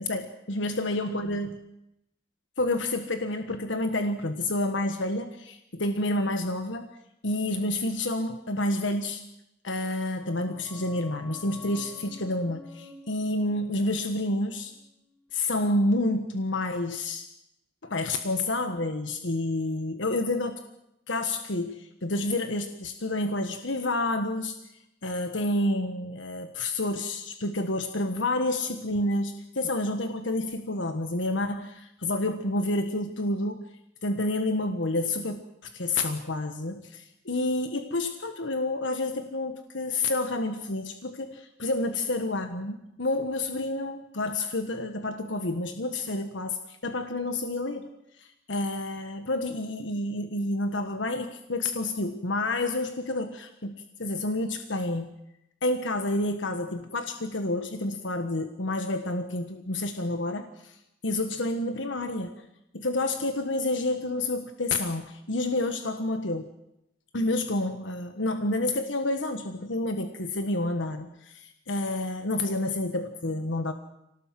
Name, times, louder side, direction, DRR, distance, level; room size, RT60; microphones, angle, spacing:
voice 1, 0.0-1.5 2.6-6.8 7.2-9.2 9.6-14.7 15.3-17.2 17.8-20.6 21.1-24.6 25.0-33.6 34.0-47.9 48.2-55.1 55.6-62.3 62.7-66.5 67.1-73.7, left 2 dB, 85° left, 7 dB, 1.5 m, -29 dB
sound 1, 9.9-15.3 15.5-15.6, left 4 dB, 25° left, 5.2 m, -50 dB
25.5 x 18.5 x 7.6 m, 0.83 s
head